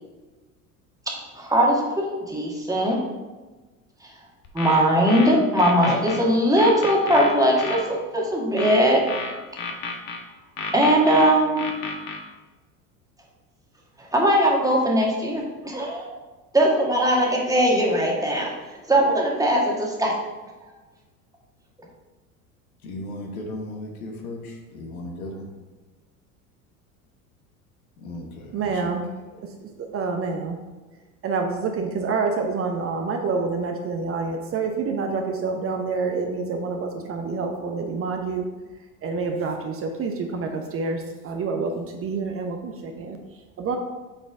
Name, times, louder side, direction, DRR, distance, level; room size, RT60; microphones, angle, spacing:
voice 1, 1.3-3.0 4.5-9.0 10.7-11.8 14.1-16.1 16.5-18.5 18.9-20.1, equal, 10° right, -2 dB, 1.6 m, -20 dB
sound 1, 4.4-6.2 6.6-7.8 8.6-10.2 10.6-12.2, left 4 dB, 55° left, 1.2 m, -32 dB
voice 2, 22.8-25.5 28.0-28.9 29.3-29.4, left 1 dB, 70° left, 2 dB, 1.3 m, -36 dB
voice 3, 28.5-29.1 29.4-30.6 31.2-38.5 39.0-43.8, right 4 dB, 30° right, 3 dB, 0.8 m, -27 dB
7.9 x 4.3 x 3.5 m, 1.2 s
figure-of-eight pair, 70°, 44 cm